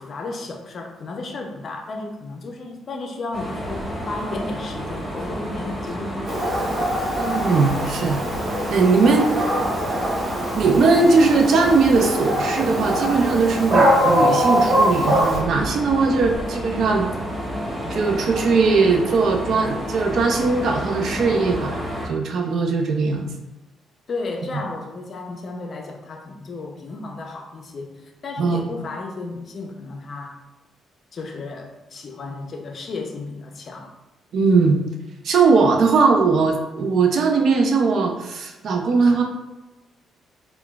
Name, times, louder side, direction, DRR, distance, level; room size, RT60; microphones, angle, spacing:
voice 1, 0.0-6.6 24.1-30.4 31.1-33.9, left 3 dB, 50° left, 3 dB, 0.5 m, -33 dB
sound 1, 3.3-22.1, equal, 10° left, 1.1 m, -30 dB
Dog, 6.3-15.4, equal, 35° right, 0.8 m, -22 dB
voice 2, 7.2-8.2 8.7-9.6 10.6-17.1 17.9-21.8 22.0-23.3 28.4-28.7 34.3-34.8 35.2-39.2, right 4 dB, 65° right, 3 dB, 0.5 m, -19 dB
3.7 x 2.2 x 2.3 m, 1.1 s
cardioid pair, 90°, 0 cm